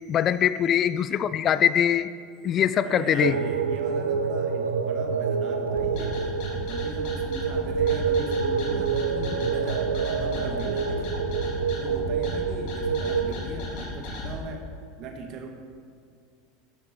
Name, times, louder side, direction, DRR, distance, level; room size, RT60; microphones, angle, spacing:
voice 1, 0.1-2.1 2.4-3.3, left 9 dB, 35° left, 15 dB, 0.5 m, -22 dB
voice 2, 2.8-6.2 6.5-11.2 11.8-14.7 15.0-15.5, right 4 dB, 45° right, 4 dB, 1.8 m, -38 dB
sound 1, 3.2-13.3, right 6 dB, 80° right, 0.8 m, -27 dB
sound 2, 5.7-14.3, left 3 dB, 55° left, 3.0 m, -36 dB
15.5 x 10.0 x 4.4 m, 2.1 s
figure-of-eight pair, 75°, 0 cm